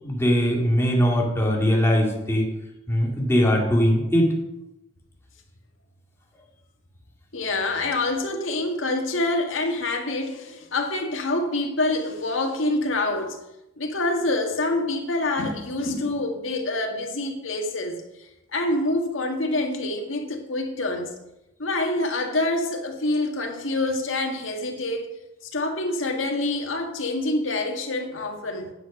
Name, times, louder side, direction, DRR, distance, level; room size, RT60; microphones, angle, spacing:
voice 1, 0.0-2.5 2.9-4.3, equal, 15° left, -2 dB, 2.2 m, -21 dB
voice 2, 7.3-13.4 13.8-21.1 21.6-25.1 25.4-28.7, left 2 dB, 90° left, 3 dB, 1.6 m, -26 dB
9.5 x 8.2 x 5.4 m, 0.91 s
head